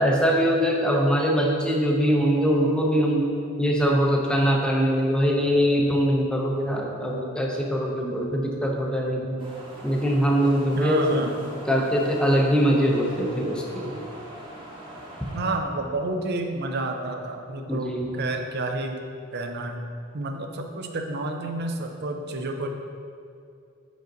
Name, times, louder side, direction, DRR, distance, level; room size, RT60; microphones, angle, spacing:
voice 1, 0.0-3.3 3.6-9.4 9.8-11.2 11.7-13.9 17.7-18.1, equal, 5° left, -1 dB, 0.6 m, -22 dB
sound 1, 9.4-15.5, right 1 dB, 25° right, 1.0 m, -42 dB
voice 2, 10.7-11.3 15.3-19.0 19.3-19.8 20.1-22.7, right 2 dB, 50° right, 4 dB, 0.5 m, -30 dB
5.2 x 5.1 x 3.8 m, 2.4 s
head